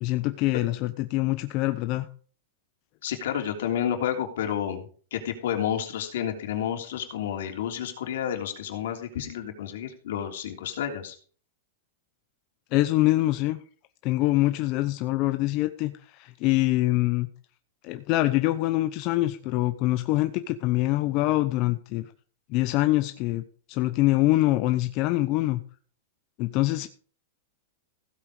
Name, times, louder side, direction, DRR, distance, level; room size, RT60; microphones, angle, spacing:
voice 1, 0.0-2.1 12.7-13.6 14.0-17.3 17.8-22.1 22.5-25.6 26.4-26.9, left 18 dB, 35° left, 9 dB, 0.7 m, -24 dB
voice 2, 3.0-11.2, left 9 dB, 70° left, 4 dB, 3.2 m, -30 dB
16.0 x 8.4 x 4.9 m, 0.43 s
supercardioid pair, 160°, 0 cm